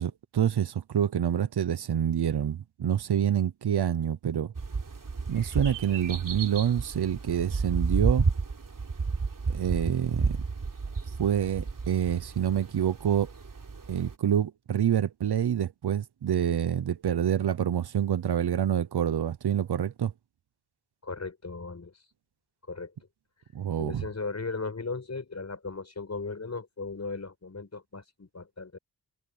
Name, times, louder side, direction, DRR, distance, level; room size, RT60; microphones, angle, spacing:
voice 1, 0.0-4.5 5.3-8.3 9.5-10.4 11.2-13.3 13.9-20.1 23.5-24.0, right 9 dB, 85° right, 0.9 m, -27 dB
sound 1, 4.5-14.1, right 4 dB, 55° right, 3.7 m, -32 dB
voice 2, 21.0-22.0 22.7-22.9 23.8-28.8, left 4 dB, 45° left, 5.2 m, -37 dB
wide cardioid pair, 75°, 39 cm